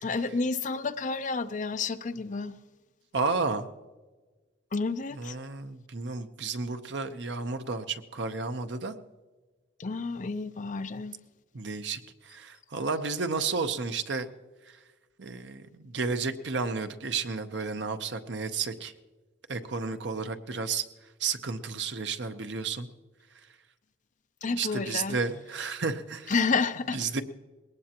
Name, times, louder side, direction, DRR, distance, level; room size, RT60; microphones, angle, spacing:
voice 1, 0.0-2.6 4.7-5.3 9.8-11.1 24.4-25.2 26.3-27.0, left 4 dB, 40° left, 0.6 m, -30 dB
voice 2, 3.1-3.7 5.1-9.0 11.5-14.3 14.7-14.8 15.2-18.9 19.5-20.8 21.2-22.9 24.5-26.3 26.9-27.2, right 4 dB, 65° right, 0.8 m, -32 dB
21.0 x 19.0 x 2.9 m
head